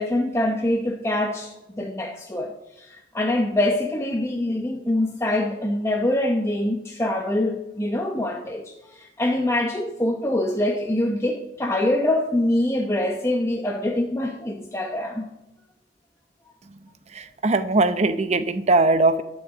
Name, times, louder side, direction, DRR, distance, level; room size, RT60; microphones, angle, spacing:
voice 1, 0.0-15.2, left 1 dB, 15° left, 1 dB, 0.8 m, -24 dB
voice 2, 17.1-19.2, right 2 dB, 40° right, 11 dB, 0.7 m, -20 dB
11.5 x 6.3 x 7.2 m, 0.92 s
head